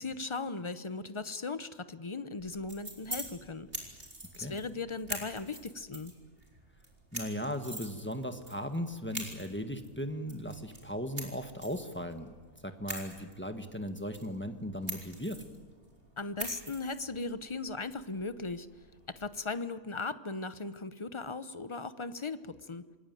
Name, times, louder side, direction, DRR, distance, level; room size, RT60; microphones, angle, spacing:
voice 1, 0.0-3.7 4.3-6.1 16.2-18.7 19.1-22.9, left 3 dB, 30° left, 12 dB, 0.6 m, -38 dB
sound 1, 2.4-19.3, right 1 dB, 40° right, 4.5 m, -45 dB
voice 2, 7.1-12.3 12.6-15.4, equal, 10° left, 6 dB, 1.3 m, -37 dB
27.0 x 20.5 x 9.2 m, 1.5 s
omnidirectional pair, 1.5 m